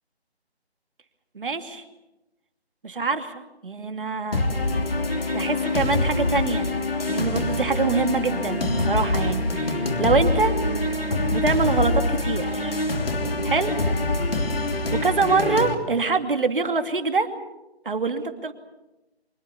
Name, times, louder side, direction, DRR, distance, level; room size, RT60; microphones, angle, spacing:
voice 1, 1.3-1.8 2.8-3.3 3.6-4.4 5.3-6.7 7.1-10.6 11.3-12.8 13.4-13.7 15.0-17.3 17.8-18.5, right 4 dB, 50° right, 7 dB, 2.6 m, -24 dB
sound 1, 4.3-15.8, left 2 dB, 60° left, 3.1 m, -25 dB
25.0 x 23.5 x 7.1 m, 0.99 s
figure-of-eight pair, 160°, 33 cm